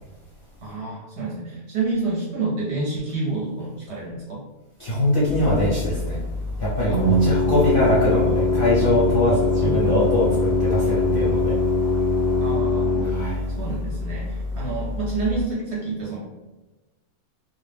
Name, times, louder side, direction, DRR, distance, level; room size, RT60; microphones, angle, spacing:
voice 1, 0.6-4.4 9.6-10.0 12.4-12.9 13.6-16.2, right 3 dB, 60° right, -5 dB, 0.8 m, -28 dB
voice 2, 4.8-6.2 6.6-11.5 13.0-13.5, left 1 dB, 55° left, -7 dB, 0.6 m, -22 dB
Organ, 5.3-15.4, left 2 dB, 15° right, 0.6 m, -23 dB
2.5 x 2.1 x 3.3 m, 1.1 s
omnidirectional pair, 1.6 m